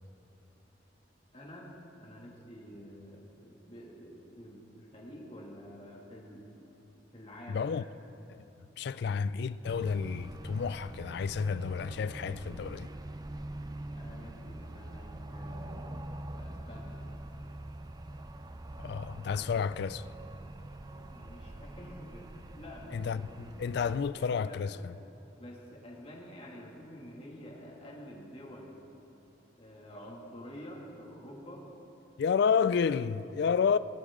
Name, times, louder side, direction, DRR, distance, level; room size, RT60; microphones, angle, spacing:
voice 1, 1.3-6.4 7.1-7.9 8.9-9.3 13.9-15.9 16.4-17.0 19.1-19.8 20.9-23.5 24.0-24.9 25.4-28.7 29.6-31.6, equal, 35° left, 2.3 m, -49 dB
voice 2, 7.5-7.9 8.3-8.5 8.8-12.9 18.8-20.0 22.9-24.9 32.2-33.8, left 6 dB, 60° left, 0.3 m, -30 dB
sound 1, 9.6-24.1, right 1 dB, 20° right, 0.5 m, -44 dB
21.0 x 11.5 x 3.7 m
head